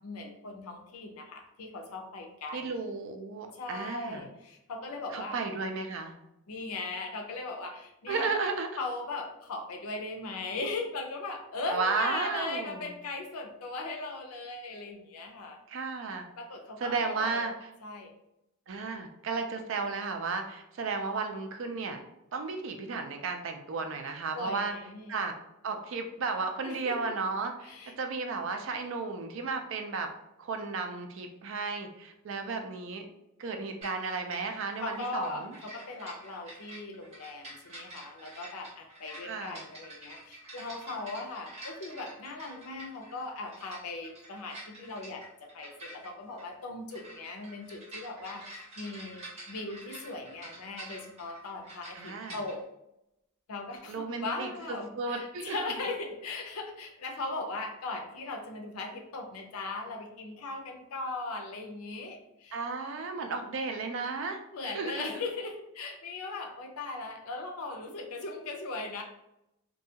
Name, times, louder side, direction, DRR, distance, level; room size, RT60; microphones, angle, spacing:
voice 1, 0.0-2.7 3.5-5.4 6.5-8.3 8.8-15.6 16.4-17.5 17.8-18.1 24.3-25.2 26.6-27.1 27.6-27.9 34.8-45.2 45.5-52.6 53.5-62.6 64.5-69.0, left 3 dB, 90° left, 3 dB, 0.5 m, -39 dB
voice 2, 2.5-4.3 5.1-6.1 8.1-8.7 11.7-12.9 15.7-16.2 16.8-17.7 18.7-22.0 22.3-24.7 25.1-25.3 25.6-30.1 30.4-33.1 33.4-35.5 39.2-39.6 52.0-52.4 53.9-55.6 62.5-65.1, right 4 dB, 60° right, 5 dB, 0.4 m, -34 dB
sound 1, 33.8-52.6, right 1 dB, 30° right, 1.4 m, -48 dB
2.6 x 2.3 x 2.8 m, 0.87 s
head